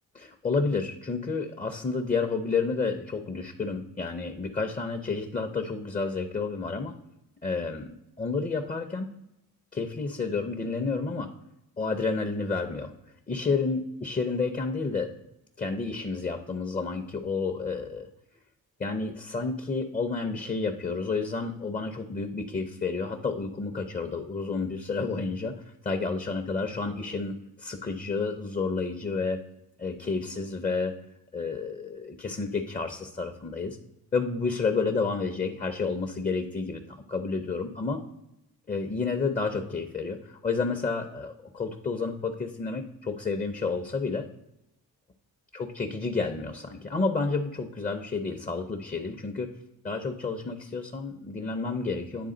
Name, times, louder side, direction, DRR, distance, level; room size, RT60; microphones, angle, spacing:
voice 1, 0.1-7.0 7.4-9.1 9.7-11.3 11.8-12.9 13.3-15.1 15.6-18.1 18.8-25.5 25.8-29.4 29.8-30.9 31.3-33.8 34.1-38.0 38.7-44.3 45.5-49.5 49.8-52.3, left 4 dB, 20° left, 4 dB, 0.5 m, -30 dB
9.3 x 3.7 x 3.8 m, 0.86 s
cardioid pair, 100°, 37 cm